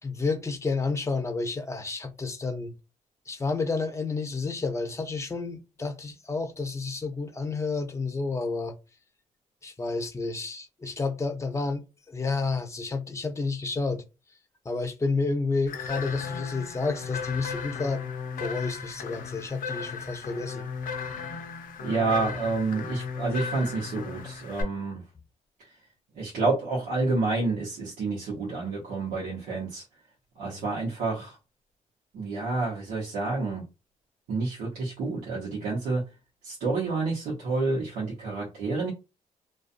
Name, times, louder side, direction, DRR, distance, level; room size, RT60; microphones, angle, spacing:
voice 1, 0.0-2.7 3.3-8.7 9.6-14.0 14.6-18.0 18.4-20.7 30.5-30.6, left 3 dB, 20° left, 0.6 m, -30 dB
sound 1, 15.7-24.6, left 6 dB, 75° left, 0.6 m, -36 dB
voice 2, 21.8-25.0 26.1-29.8 30.4-31.4 32.1-33.6 34.3-36.0 36.4-38.9, right 3 dB, 90° right, 0.9 m, -29 dB
2.5 x 2.3 x 2.5 m
cardioid pair, 65°, 14 cm